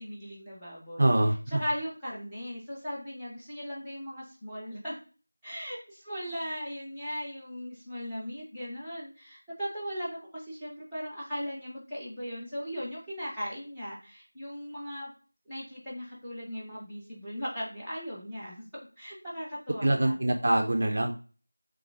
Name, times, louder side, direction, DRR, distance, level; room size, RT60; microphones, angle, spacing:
voice 1, 0.0-5.0 5.4-15.1 15.5-18.7 19.0-20.3, equal, ahead, -11 dB, 0.8 m, -38 dB
voice 2, 1.0-1.3 19.8-21.1, right 1 dB, 40° right, 4 dB, 0.4 m, -24 dB
3.7 x 3.2 x 2.4 m, 0.38 s
figure-of-eight pair, 175°, 0 cm